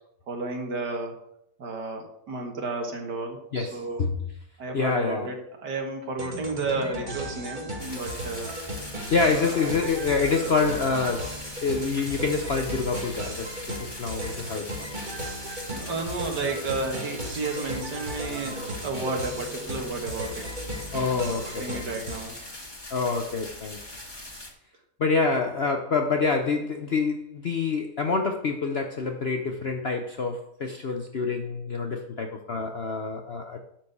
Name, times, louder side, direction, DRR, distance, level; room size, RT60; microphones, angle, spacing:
voice 1, 0.3-1.2 1.6-4.1 4.6-8.5 9.2-9.7 15.7-20.5 21.0-22.4, right 3 dB, 75° right, 2 dB, 2.3 m, -32 dB
voice 2, 3.5-4.1 4.7-5.3 9.1-13.5 13.8-14.9 20.9-21.8 22.9-23.8 25.0-33.7, left 4 dB, 55° left, 4 dB, 0.7 m, -27 dB
sound 1, 6.2-22.5, equal, 30° right, 1.7 m, -36 dB
sound 2, 7.8-24.5, left 1 dB, 15° left, 1.4 m, -41 dB
11.5 x 4.5 x 6.6 m, 0.76 s
omnidirectional pair, 1.8 m